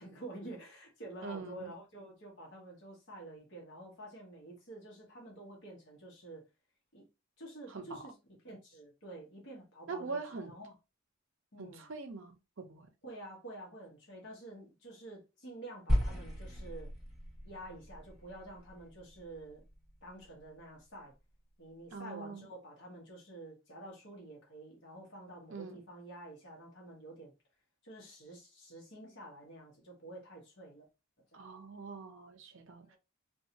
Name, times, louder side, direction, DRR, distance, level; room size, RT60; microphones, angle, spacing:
voice 1, 0.0-6.4 6.9-7.1 7.4-10.7 11.5-11.9 13.0-16.9 17.4-19.6 20.0-21.1 21.6-27.3 27.8-30.9 31.3-31.5 32.8-33.0, right 1 dB, 50° left, 1.0 m, -49 dB
voice 2, 1.2-1.7 7.7-8.0 9.9-10.5 11.6-12.9 21.9-22.5 25.5-25.8 31.3-33.0, right 4 dB, 60° right, 0.5 m, -43 dB
sound 1, 15.9-20.3, equal, 5° right, 1.1 m, -36 dB
2.6 x 2.3 x 2.8 m
head